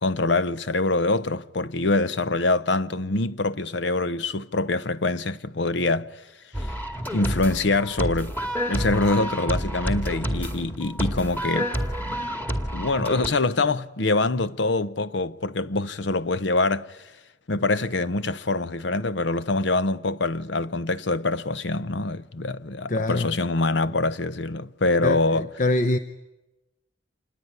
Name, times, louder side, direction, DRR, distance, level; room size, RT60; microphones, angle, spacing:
voice 1, 0.0-6.2 6.6-6.7 7.1-8.3 8.7-11.7 12.0-17.0 17.5-25.4, left 2 dB, 75° left, 0.9 m, -25 dB
sound 1, 6.5-13.3, equal, 10° left, 2.2 m, -29 dB
voice 2, 22.9-23.4 25.0-26.0, left 2 dB, 45° left, 0.9 m, -24 dB
27.0 x 21.0 x 9.6 m
head